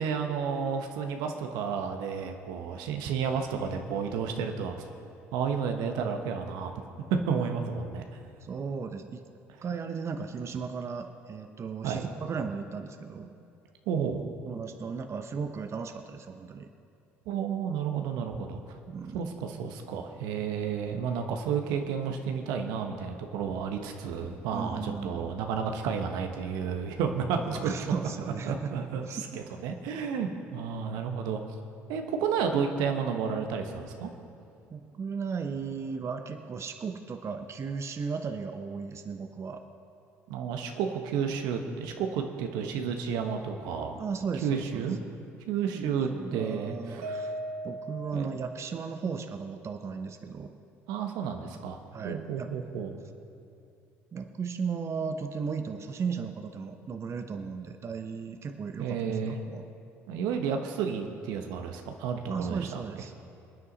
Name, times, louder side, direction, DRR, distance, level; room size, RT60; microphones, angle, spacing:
voice 1, 0.0-4.7 5.3-6.7 7.1-8.0 11.8-12.1 13.9-14.2 17.3-18.6 19.1-27.7 28.4-31.4 31.9-34.1 40.3-44.0 44.4-45.0 45.5-47.3 48.1-48.3 50.9-51.8 52.0-53.0 58.8-59.4 60.1-62.8, right 6 dB, 70° right, 5 dB, 1.3 m, -31 dB
voice 2, 8.4-9.2 9.6-13.3 14.5-16.7 18.9-19.3 24.5-25.2 27.4-28.7 29.0-29.6 34.7-39.6 44.0-44.9 45.7-47.3 47.6-50.5 51.9-52.5 54.1-59.6 62.3-63.1, right 5 dB, 40° right, 6 dB, 1.0 m, -36 dB
Mallet percussion, 47.0-49.3, right 1 dB, 90° right, 0.7 m, -39 dB
27.0 x 9.7 x 4.1 m, 2.6 s
hypercardioid pair, 60°, 7 cm